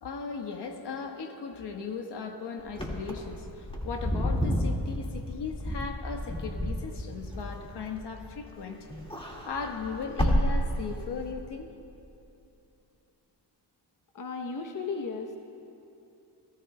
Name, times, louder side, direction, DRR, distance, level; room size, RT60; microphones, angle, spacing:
voice 1, 0.0-8.8 9.2-11.7, left 5 dB, 70° left, 4 dB, 1.3 m, -37 dB
Wind / Car, 2.7-8.5 8.8-11.3, equal, 10° left, 1.8 m, -30 dB
voice 2, 14.1-15.4, left 4 dB, 45° left, 4 dB, 0.9 m, -35 dB
27.0 x 14.0 x 2.2 m, 2.8 s
cardioid pair, 75°, 43 cm